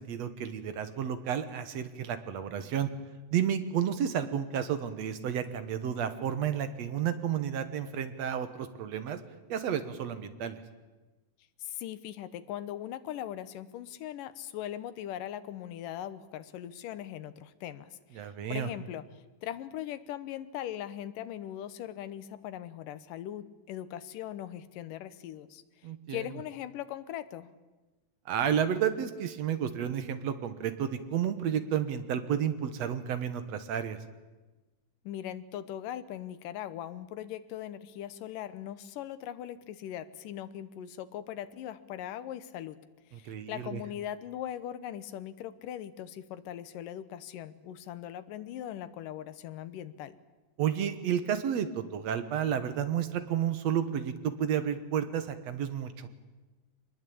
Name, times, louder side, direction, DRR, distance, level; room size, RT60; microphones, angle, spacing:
voice 1, 0.0-2.9 3.3-9.2 9.5-10.6 18.1-18.7 25.8-26.3 28.3-34.0 43.1-43.8 50.6-56.1, right 9 dB, 60° right, 10 dB, 2.2 m, -31 dB
voice 2, 11.6-19.0 19.4-25.6 26.1-27.5 35.0-42.8 43.1-50.2, left 11 dB, 85° left, 13 dB, 2.7 m, -40 dB
24.5 x 20.5 x 8.7 m, 1.2 s
omnidirectional pair, 3.8 m